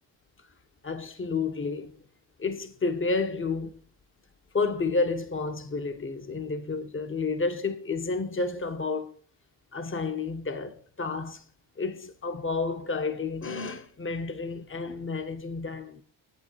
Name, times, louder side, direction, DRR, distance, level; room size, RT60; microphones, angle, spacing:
voice 1, 0.8-1.9 2.4-3.8 4.5-9.1 9.7-11.4 11.8-16.0, left 4 dB, 25° left, 1.3 m, -30 dB
8.6 x 8.2 x 4.8 m
cardioid pair, 95°, 47 cm